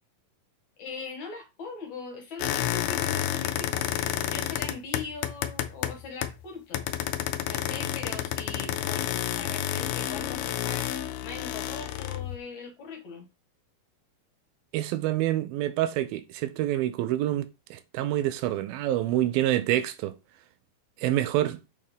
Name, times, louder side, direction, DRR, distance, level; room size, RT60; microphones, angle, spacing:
voice 1, 0.8-6.9 7.5-13.3, left 4 dB, 60° left, 2.3 m, -41 dB
sound 1, 2.4-6.4 6.7-12.4, left 12 dB, 80° left, 2.1 m, -30 dB
voice 2, 14.7-20.1 21.0-21.6, right 13 dB, 85° right, 2.5 m, -27 dB
6.7 x 4.4 x 5.1 m
omnidirectional pair, 4.2 m